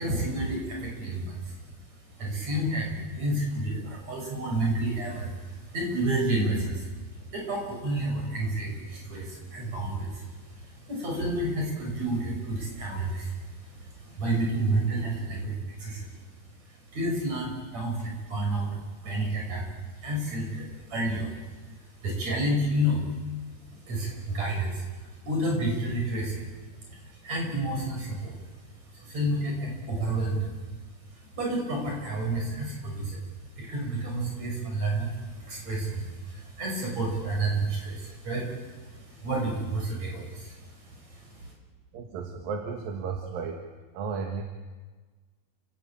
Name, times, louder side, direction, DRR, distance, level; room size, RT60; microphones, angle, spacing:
voice 1, 0.0-1.6 2.2-15.5 15.8-16.1 16.9-18.8 19.0-19.6 20.0-21.4 22.0-23.0 23.7-24.9 25.2-26.4 27.0-28.4 28.9-30.6 31.4-33.2 33.6-41.5, right 1 dB, 50° right, 0 dB, 7.2 m, -30 dB
voice 2, 41.9-43.6 43.9-44.4, right 5 dB, 75° right, 3 dB, 3.4 m, -33 dB
29.5 x 16.0 x 8.9 m, 1.3 s
omnidirectional pair, 4.1 m